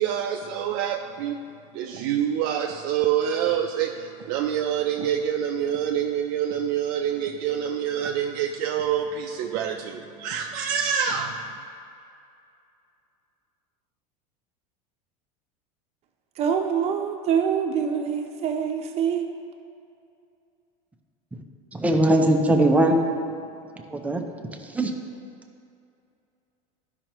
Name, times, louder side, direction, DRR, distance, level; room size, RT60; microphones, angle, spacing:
voice 1, 0.0-1.4 1.7-11.6, right 9 dB, 60° right, 0.5 m, -26 dB
voice 2, 16.4-19.3, right 7 dB, 35° right, 0.8 m, -25 dB
voice 3, 21.7-23.0 23.9-24.2 24.6-25.0, right 1 dB, 10° right, 0.6 m, -20 dB
12.0 x 5.6 x 3.0 m
supercardioid pair, 130°, 18 cm